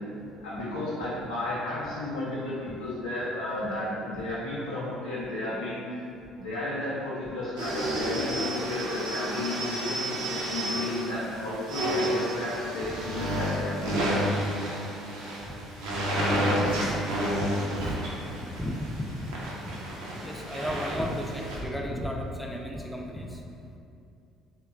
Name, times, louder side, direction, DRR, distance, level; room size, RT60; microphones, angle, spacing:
voice 1, 0.4-5.8 6.4-14.1, left 1 dB, 85° left, -9 dB, 0.4 m, -33 dB
sound 1, 7.6-21.6, equal, 75° right, 0.4 m, -30 dB
voice 2, 17.7-18.0 18.4-19.2 20.2-23.4, equal, 5° left, 0 dB, 0.3 m, -33 dB
2.8 x 2.2 x 2.3 m, 2.6 s
hypercardioid pair, 55°, 0 cm